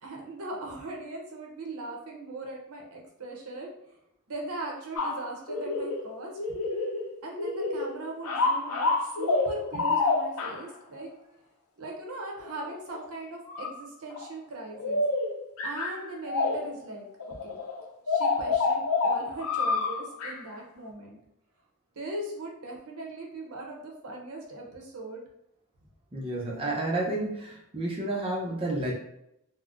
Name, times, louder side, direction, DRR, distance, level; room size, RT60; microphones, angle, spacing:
voice 1, 0.0-3.7 4.3-6.4 7.2-11.1 11.8-15.0 15.6-17.6 18.1-21.2 22.0-25.2, right 2 dB, 80° right, 0 dB, 0.7 m, -39 dB
sound 1, 5.0-6.0 6.4-7.1 7.4-7.9 8.2-10.6 12.4-13.0 13.5-13.7 14.1-14.2 14.7-16.8 17.2-20.4, left 3 dB, 85° left, 0.6 m, -28 dB
voice 2, 26.1-28.9, right 2 dB, 25° right, -3 dB, 0.5 m, -30 dB
3.7 x 2.0 x 2.4 m, 0.79 s
head